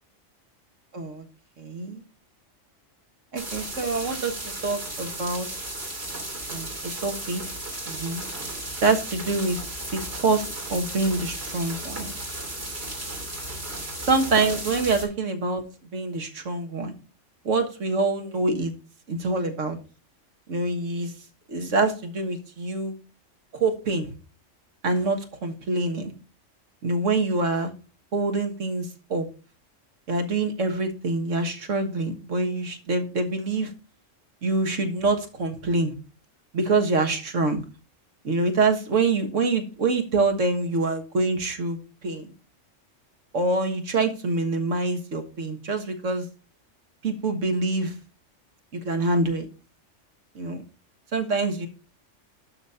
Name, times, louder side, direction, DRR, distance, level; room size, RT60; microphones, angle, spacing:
voice 1, 0.9-1.2 1.6-2.0 3.3-5.5 6.5-6.7 7.0-7.4 7.9-8.2 8.8-9.6 9.9-12.1 14.0-15.6 15.9-16.9 17.5-18.7 19.1-19.8 20.5-21.1 21.5-23.0 23.5-24.1 24.8-26.1 26.8-27.7 28.1-29.3 30.1-33.7 34.4-35.9 36.5-37.6 38.2-41.8 42.0-42.3 43.3-46.3 47.0-47.9 48.7-49.5 50.4-50.6 51.1-51.7, right 3 dB, 80° right, 5 dB, 1.8 m, -25 dB
sound 1, 3.4-15.0, right 1 dB, 55° right, 3.2 m, -35 dB
11.5 x 4.1 x 5.5 m, 0.34 s
omnidirectional pair, 1.3 m